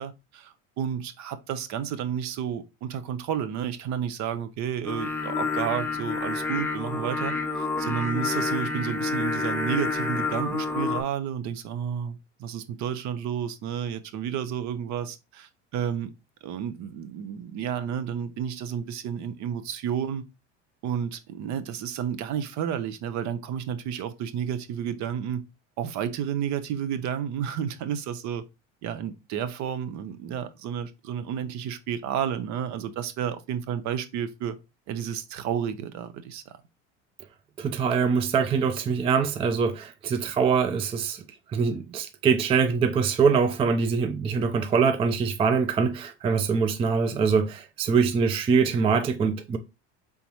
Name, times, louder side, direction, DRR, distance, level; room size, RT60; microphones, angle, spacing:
voice 1, 0.0-16.1 16.4-20.2 20.8-25.4 25.8-28.4 28.8-34.6 34.9-36.6, right 9 dB, 50° right, 0.7 m, -31 dB
Singing, 4.9-11.0, left 4 dB, 5° left, 0.8 m, -28 dB
voice 2, 37.6-49.6, right 5 dB, 15° right, 0.3 m, -24 dB
4.0 x 3.6 x 2.9 m
hypercardioid pair, 85°, 37 cm